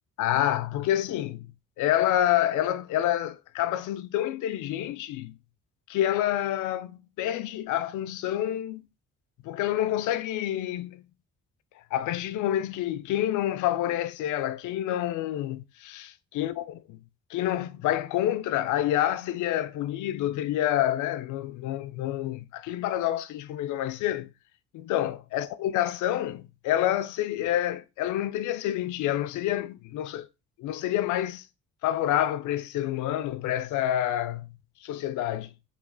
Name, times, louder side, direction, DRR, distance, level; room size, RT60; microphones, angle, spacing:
voice 1, 0.2-5.4 5.9-8.8 9.4-11.0 11.9-17.0 17.3-24.3 24.7-30.3 30.6-31.4 31.8-35.5, left 12 dB, 80° left, 0.5 m, -28 dB
3.3 x 3.1 x 3.7 m
cardioid pair, 90°, 30 cm